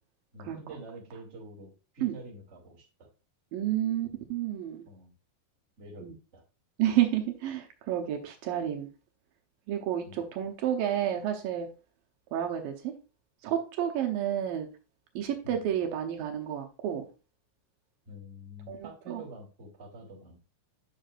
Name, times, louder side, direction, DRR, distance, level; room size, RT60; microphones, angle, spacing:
voice 1, 0.3-3.1 4.9-5.1 5.8-6.4 10.0-10.2 15.4-15.7 18.0-20.4, right 1 dB, 20° right, -3 dB, 2.4 m, -47 dB
voice 2, 3.5-4.8 6.0-6.1 6.8-8.9 9.7-11.7 12.3-12.9 13.4-14.7 15.2-17.0 18.7-19.2, right 11 dB, 80° right, 3 dB, 2.6 m, -30 dB
9.9 x 6.6 x 2.5 m, 0.32 s
omnidirectional pair, 4.0 m